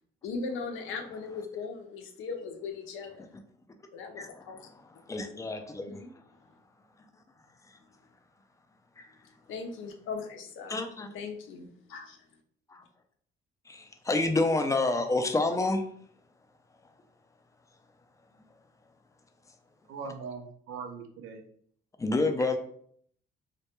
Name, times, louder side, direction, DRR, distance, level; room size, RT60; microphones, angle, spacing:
voice 1, 0.2-3.3 3.9-4.7 5.9-6.1 9.5-10.8 11.1-12.3, left 4 dB, 85° left, 4 dB, 0.5 m, -39 dB
voice 2, 4.2-6.0 7.7-7.8 9.0-9.1 10.7-11.1 12.7-12.8 13.7-15.8 22.0-22.6, left 2 dB, 15° left, 6 dB, 0.4 m, -29 dB
voice 3, 19.9-21.4, right 5 dB, 90° right, 4 dB, 0.5 m, -40 dB
2.2 x 2.2 x 2.9 m, 0.62 s
cardioid pair, 90°, 20 cm